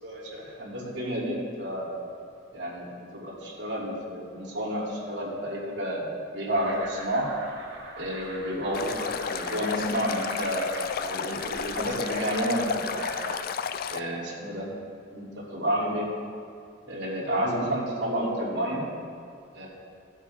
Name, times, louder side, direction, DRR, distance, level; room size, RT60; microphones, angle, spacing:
voice 1, 0.0-1.9 2.5-2.9 3.1-7.3 8.0-10.7 11.0-13.1 13.9-14.7 15.1-16.1 16.9-18.9 19.5-19.8, equal, 65° right, -6 dB, 3.1 m, -30 dB
sound 1, 6.5-13.4, right 2 dB, 90° right, 2.1 m, -41 dB
Stream, 8.7-14.0, left 7 dB, 50° left, 0.4 m, -32 dB
16.0 x 8.0 x 3.6 m, 2.4 s
head